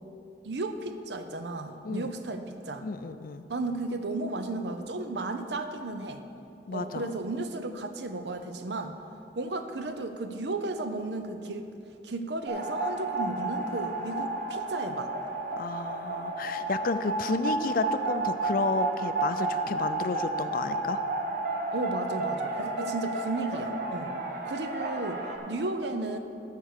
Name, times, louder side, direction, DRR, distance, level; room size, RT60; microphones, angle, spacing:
voice 1, 0.4-2.8 3.5-6.2 6.7-9.0 9.4-11.7 12.0-15.1 21.7-24.1 24.4-26.2, right 2 dB, 70° right, 8 dB, 0.7 m, -34 dB
voice 2, 2.8-3.4 6.7-7.1 15.6-21.0, left 3 dB, 55° left, 11 dB, 0.4 m, -31 dB
sound 1, 12.5-25.4, right 2 dB, 50° right, 1.3 m, -32 dB
13.5 x 4.7 x 6.6 m, 2.7 s
head